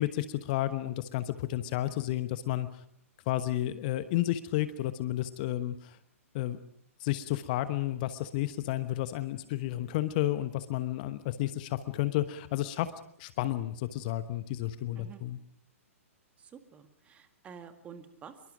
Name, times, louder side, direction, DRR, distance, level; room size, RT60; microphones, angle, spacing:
voice 1, 0.0-2.7 3.3-6.0 6.3-6.6 7.0-12.9 13.2-15.4, left 14 dB, 35° left, 12 dB, 1.1 m, -31 dB
voice 2, 16.4-18.5, right 7 dB, 15° right, 8 dB, 2.0 m, -49 dB
26.0 x 23.0 x 5.1 m, 0.70 s
figure-of-eight pair, 115°, 8 cm